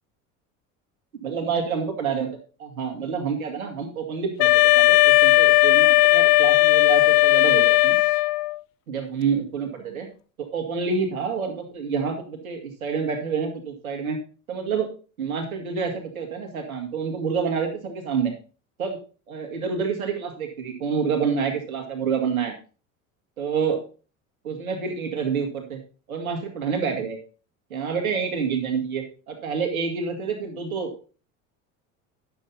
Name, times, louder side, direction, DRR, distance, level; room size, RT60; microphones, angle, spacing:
voice 1, 1.2-2.3 2.6-8.0 8.9-10.1 10.4-14.2 14.5-14.9 15.2-18.3 18.8-19.0 19.3-22.5 23.4-23.8 24.4-25.8 26.1-27.2 27.7-31.1, right 6 dB, 90° right, 4 dB, 2.1 m, -28 dB
Wind instrument woodwind instrument, 4.4-8.6, left 23 dB, 60° left, 0.5 m, -17 dB
9.7 x 7.3 x 4.1 m, 0.36 s
hypercardioid pair, 75°, 41 cm